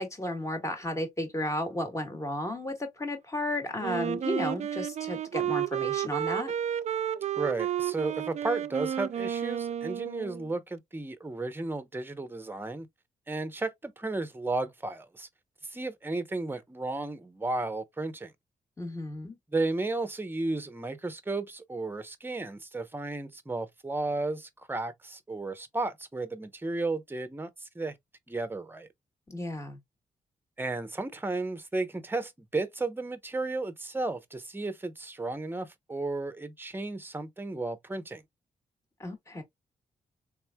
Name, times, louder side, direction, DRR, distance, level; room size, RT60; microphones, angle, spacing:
voice 1, 0.0-6.5 18.8-19.4 29.3-29.8 39.0-39.4, left 1 dB, 20° left, 1.3 m, -33 dB
Wind instrument woodwind instrument, 3.8-10.5, right 10 dB, 50° right, 0.4 m, -32 dB
voice 2, 7.4-12.9 13.3-15.3 15.7-18.3 19.5-27.9 28.3-28.9 30.6-38.2, right 2 dB, 15° right, 0.7 m, -33 dB
3.5 x 3.1 x 2.2 m
cardioid pair, 80°, 15 cm